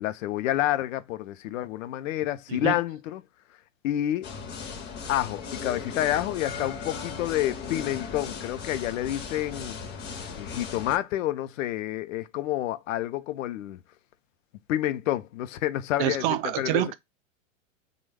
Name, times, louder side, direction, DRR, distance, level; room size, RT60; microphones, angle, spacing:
voice 1, 0.0-3.2 3.8-4.3 5.1-9.8 10.3-13.8 14.7-16.8, left 13 dB, 75° left, 0.5 m, -29 dB
sound 1, 4.2-11.0, left 5 dB, 25° left, 0.6 m, -37 dB
voice 2, 16.0-16.9, right 12 dB, 40° right, 0.4 m, -26 dB
3.0 x 2.2 x 3.3 m
hypercardioid pair, 120°, 40 cm